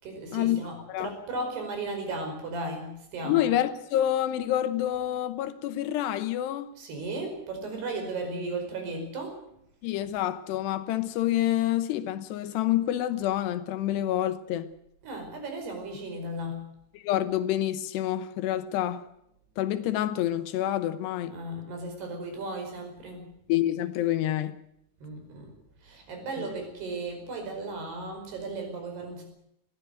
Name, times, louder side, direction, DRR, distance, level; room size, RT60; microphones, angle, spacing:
voice 1, 0.0-3.6 6.8-9.4 15.0-16.7 21.3-23.3 25.0-25.6 25.8-29.2, right 2 dB, 65° right, 7.0 m, -35 dB
voice 2, 3.2-6.7 9.8-14.7 16.9-19.1 19.6-21.4 23.5-24.6, left 12 dB, 80° left, 3.0 m, -27 dB
21.0 x 15.0 x 9.2 m
omnidirectional pair, 5.0 m